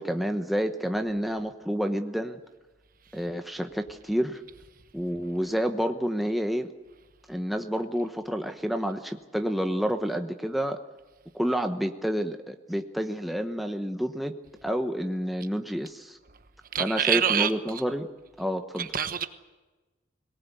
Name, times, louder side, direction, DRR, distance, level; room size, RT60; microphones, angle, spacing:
voice 1, 0.0-2.4 3.1-4.4 4.9-6.7 7.3-10.8 11.3-14.3 14.6-16.2 16.8-18.1 18.4-18.9, equal, ahead, 1.0 m, -29 dB
voice 2, 16.7-17.5 18.8-19.3, right 8 dB, 45° right, 1.1 m, -25 dB
22.5 x 18.5 x 8.3 m
head